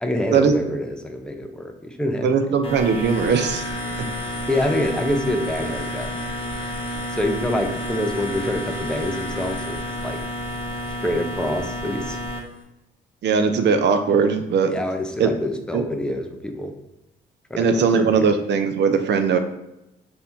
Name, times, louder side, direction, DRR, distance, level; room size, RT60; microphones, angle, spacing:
voice 1, 0.0-2.3 4.5-6.1 7.1-10.2 11.0-12.2 14.7-16.7 17.5-18.3, left 1 dB, 5° left, 4 dB, 0.6 m, -26 dB
voice 2, 2.2-3.7 13.2-14.7 15.2-15.3 15.7-15.8 17.6-19.4, right 5 dB, 60° right, 8 dB, 0.6 m, -19 dB
sound 1, 2.6-12.4, equal, 25° left, 0.9 m, -30 dB
3.4 x 2.7 x 4.4 m, 0.92 s
cardioid pair, 90°, 20 cm